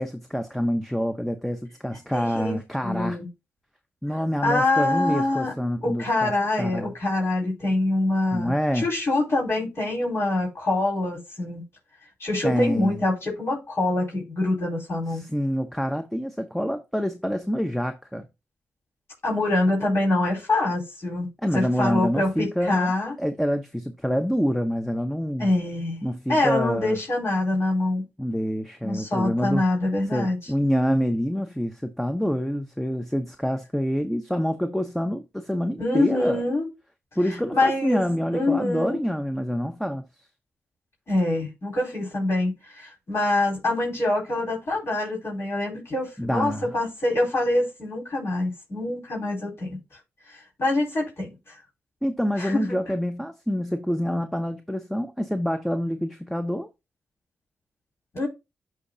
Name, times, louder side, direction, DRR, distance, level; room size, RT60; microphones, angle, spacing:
voice 1, 0.0-3.2 4.0-6.9 8.3-8.9 12.4-13.1 15.1-18.2 21.4-22.9 23.2-25.5 26.0-27.0 28.2-29.6 30.1-36.4 37.2-40.0 46.2-46.7 52.0-56.7, equal, 5° left, 0.8 m, -26 dB
voice 2, 2.1-3.3 4.4-5.5 5.8-11.6 12.2-15.2 19.2-21.3 21.5-23.1 25.4-26.0 26.3-28.1 28.8-30.4 35.8-36.7 37.5-38.0 38.3-39.0 41.1-49.8 50.3-51.6 52.4-52.8 58.1-58.3, left 2 dB, 60° left, 4.4 m, -25 dB
11.0 x 4.0 x 2.7 m
supercardioid pair, 45°, 5 cm